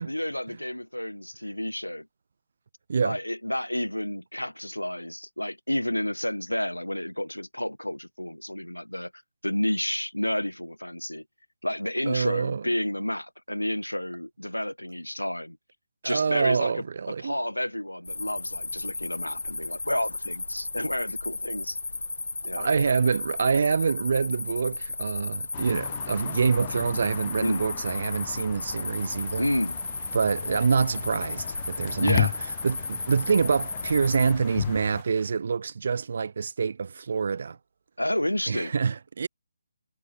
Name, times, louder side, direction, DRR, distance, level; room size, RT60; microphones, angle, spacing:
voice 1, 0.0-2.1 3.0-9.1 9.4-11.2 11.6-15.6 16.0-21.8 22.4-22.7 27.4-27.6 29.4-29.8 32.0-32.3 38.0-38.7, left 1 dB, 85° left, 2.2 m, -30 dB
voice 2, 12.1-12.6 16.0-17.3 22.6-29.5 30.1-32.3 32.6-37.6 38.5-39.3, right 5 dB, 45° right, 0.3 m, -26 dB
sound 1, 18.0-34.3, left 3 dB, 65° left, 0.8 m, -34 dB
sound 2, 25.5-35.0, left 13 dB, 25° left, 1.5 m, -35 dB
sound 3, 28.9-35.3, right 10 dB, 30° right, 7.2 m, -55 dB
figure-of-eight pair, 145°, 0 cm